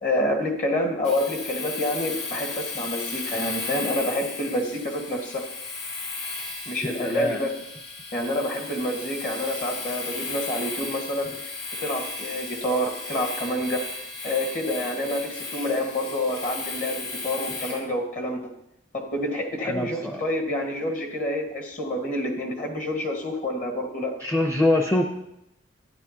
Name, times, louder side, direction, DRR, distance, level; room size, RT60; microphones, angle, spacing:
voice 1, 0.0-5.4 6.6-7.5 8.1-11.3 11.8-13.8 14.2-18.4 18.9-24.1, left 1 dB, 45° left, 2 dB, 1.6 m, -28 dB
Domestic sounds home sounds, 1.0-17.9, left 3 dB, 65° left, 1.9 m, -35 dB
voice 2, 6.8-7.4 19.6-20.2 24.2-25.0, left 1 dB, 10° left, 4 dB, 0.6 m, -24 dB
12.5 x 9.9 x 2.9 m, 0.83 s
head